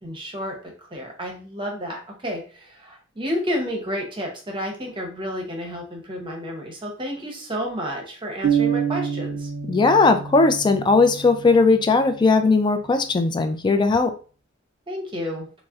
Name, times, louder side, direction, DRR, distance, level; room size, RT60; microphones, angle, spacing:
voice 1, 0.0-9.5 14.9-15.5, equal, 25° right, 1 dB, 0.7 m, -31 dB
sound 1, 8.4-12.2, right 7 dB, 85° right, 0.4 m, -27 dB
voice 2, 9.7-14.1, left 3 dB, 20° left, 7 dB, 0.3 m, -18 dB
3.8 x 2.0 x 2.3 m, 0.38 s
head